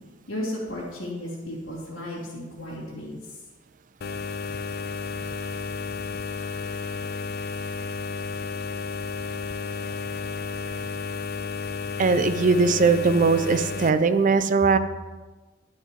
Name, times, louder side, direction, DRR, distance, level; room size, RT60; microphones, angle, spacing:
voice 1, 0.3-3.2 14.6-14.7, left 1 dB, 75° left, -9 dB, 2.7 m, -34 dB
sound 1, 4.0-13.9, left 4 dB, 50° left, 0.4 m, -32 dB
voice 2, 12.0-14.8, right 4 dB, 40° right, 11 dB, 0.5 m, -20 dB
11.5 x 5.5 x 5.1 m, 1.2 s
head